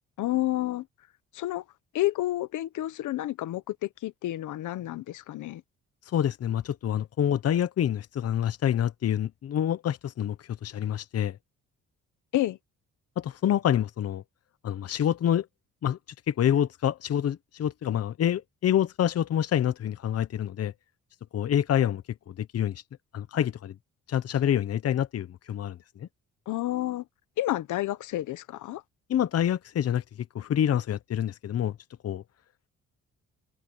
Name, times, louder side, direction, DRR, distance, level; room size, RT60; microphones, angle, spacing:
voice 1, 0.2-0.8 1.3-1.6 1.9-5.6 12.3-12.6 26.5-27.0 27.4-28.8, left 15 dB, 80° left, 1.0 m, -30 dB
voice 2, 6.1-10.4 10.6-11.4 13.2-14.2 14.6-15.5 15.8-16.0 16.3-20.7 21.3-22.0 22.3-22.8 23.1-23.7 24.1-26.1 29.1-30.0 30.3-31.7 32.0-32.2, left 10 dB, 55° left, 1.0 m, -27 dB
cardioid pair, 90°, 30 cm